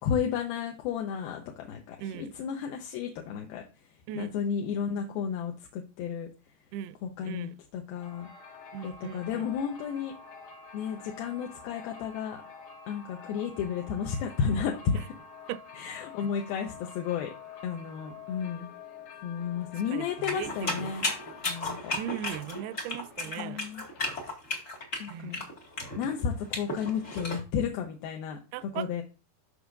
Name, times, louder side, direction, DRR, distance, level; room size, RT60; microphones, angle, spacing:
voice 1, 0.0-3.6 4.2-6.3 7.0-7.5 7.7-8.3 8.8-10.1 10.7-12.4 12.9-15.1 15.8-17.3 17.6-18.7 19.2-21.0 21.5-21.9 23.4-23.8 25.0-25.4 26.0-29.0, left 7 dB, 75° left, 2.6 m, -32 dB
voice 2, 2.0-2.3 4.1-4.3 6.7-7.0 7.2-7.6 8.7-9.5 15.0-15.1 15.5-15.6 19.9-20.9 21.9-23.6 25.1-25.5 28.5-29.0, right 12 dB, 85° right, 2.4 m, -38 dB
sound 1, 7.9-24.3, left 5 dB, 60° left, 2.7 m, -48 dB
sound 2, 20.2-27.4, left 2 dB, 40° left, 1.1 m, -34 dB
13.0 x 4.9 x 2.5 m
omnidirectional pair, 4.6 m